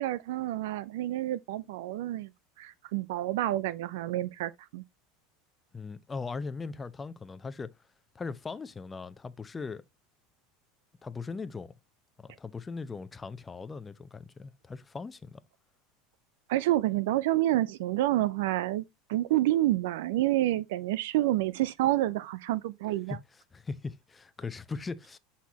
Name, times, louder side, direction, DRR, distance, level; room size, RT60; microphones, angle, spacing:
voice 1, 0.0-2.3 2.6-4.8 16.5-18.8 19.1-23.2, right 15 dB, 70° right, 0.5 m, -28 dB
voice 2, 5.7-7.7 8.1-9.8 11.0-11.7 12.2-15.4 23.1-23.2 23.5-25.2, left 4 dB, 20° left, 0.7 m, -39 dB
8.1 x 4.1 x 2.9 m
hypercardioid pair, 85°, 0 cm